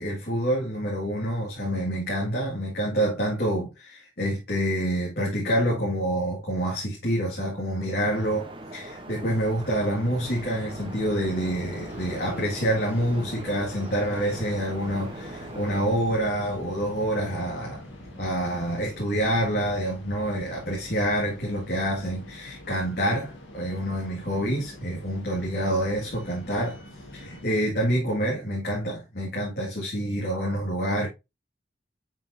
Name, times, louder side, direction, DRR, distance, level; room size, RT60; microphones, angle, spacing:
voice 1, 0.0-17.8 18.2-26.8 27.1-31.1, right 1 dB, 50° left, 2.2 m, -27 dB
sound 1, 8.0-15.8, right 1 dB, 25° right, 1.0 m, -42 dB
sound 2, 10.2-27.5, left 1 dB, 85° left, 2.1 m, -46 dB
sound 3, 11.9-20.2, equal, 10° right, 2.2 m, -45 dB
7.1 x 5.5 x 2.7 m
head